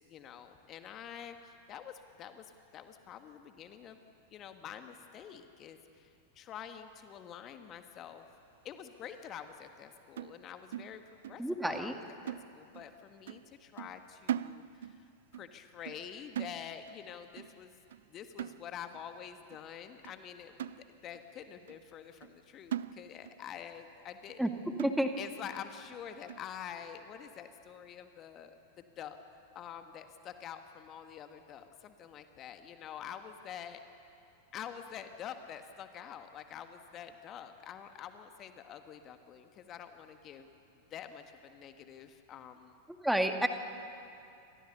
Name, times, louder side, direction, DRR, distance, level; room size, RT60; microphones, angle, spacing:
voice 1, 0.0-4.0 4.3-8.3 8.6-17.8 18.1-24.6 25.2-29.2 29.5-33.8 34.5-40.5 40.9-42.8, left 9 dB, 30° left, 7 dB, 1.6 m, -47 dB
sound 1, 10.2-11.5 11.7-12.0 12.3-13.0 13.3-13.5 13.8-15.0 15.3-15.5 15.9-16.1 16.4-17.0 17.4-17.6 17.9-18.1 18.4-19.0 19.5-19.6 20.0-20.2 20.6-21.3 21.7-21.8 22.2-22.4 22.7-23.4 23.8-23.9 24.3-24.4 24.8-25.3 25.8-25.9 26.3-26.5, right 10 dB, 60° right, 0.5 m, -41 dB
voice 2, 11.4-11.9 24.4-24.5 24.8-25.1 43.0-43.5, right 1 dB, ahead, 6 dB, 1.8 m, -29 dB
28.5 x 26.0 x 6.8 m, 2.6 s
figure-of-eight pair, 90°, 0 cm